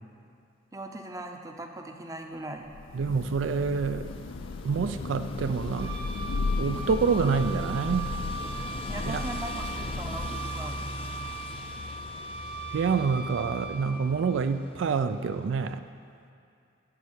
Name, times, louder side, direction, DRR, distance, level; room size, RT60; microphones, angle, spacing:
voice 1, 0.7-2.7 8.9-10.9, right 2 dB, 15° right, 3 dB, 0.6 m, -39 dB
Thunder / Rain, 2.7-10.7, left 3 dB, 85° left, 0.5 m, -35 dB
voice 2, 2.9-4.1 4.6-6.0 6.6-8.1 9.1-9.2 12.7-15.8, right 5 dB, 75° right, 10 dB, 0.4 m, -27 dB
sound 1, 4.1-15.8, left 3 dB, 30° left, 0.4 m, -41 dB
Wind instrument woodwind instrument, 5.7-14.1, right 4 dB, 60° right, 2.6 m, -39 dB
13.0 x 4.5 x 8.1 m, 2.5 s
head